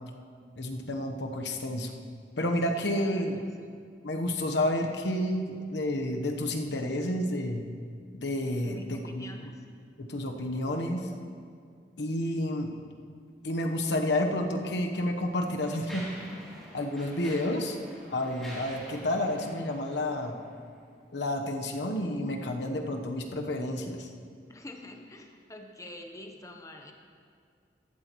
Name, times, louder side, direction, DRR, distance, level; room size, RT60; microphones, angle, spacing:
voice 1, 0.6-1.9 2.4-3.4 4.0-7.7 8.2-9.5 10.0-11.1 12.0-12.7 13.4-16.1 16.3-17.8 18.1-20.3 21.1-24.1, left 1 dB, 80° left, 4 dB, 1.0 m, -30 dB
voice 2, 2.7-3.4 8.6-9.6 24.5-26.9, left 1 dB, 20° left, 3 dB, 0.9 m, -46 dB
Mechanisms, 14.3-14.4 15.1-20.8, equal, ahead, 3.0 m, -47 dB
15.0 x 12.0 x 3.1 m, 2.2 s
head